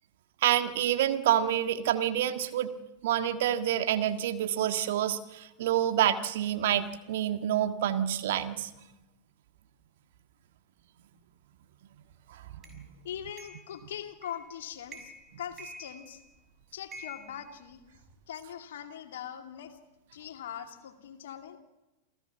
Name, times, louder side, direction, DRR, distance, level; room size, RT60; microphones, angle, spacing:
voice 1, 0.4-2.7 3.0-8.7 12.7-12.9, right 11 dB, 55° right, 8 dB, 1.7 m, -27 dB
sound 1, 12.6-12.8 13.4-13.7 14.2-14.5 14.9-15.3 15.6-16.4 16.9-18.2, right 1 dB, 25° right, 6.2 m, -47 dB
voice 2, 13.0-15.1 15.4-16.2 16.7-17.8 18.3-19.8 20.1-21.6, left 9 dB, 60° left, 5 dB, 2.6 m, -41 dB
28.5 x 17.0 x 7.4 m, 1.0 s
figure-of-eight pair, 90°, 0 cm